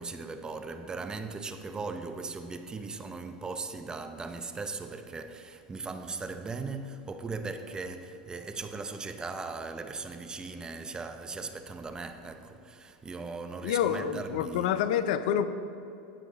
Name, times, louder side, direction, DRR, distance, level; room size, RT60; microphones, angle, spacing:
voice 1, 0.0-14.7, right 4 dB, 20° right, 0.7 m, -38 dB
voice 2, 13.6-15.4, left 9 dB, 70° left, 0.6 m, -27 dB
16.5 x 5.7 x 4.1 m
hypercardioid pair, 105°, 4 cm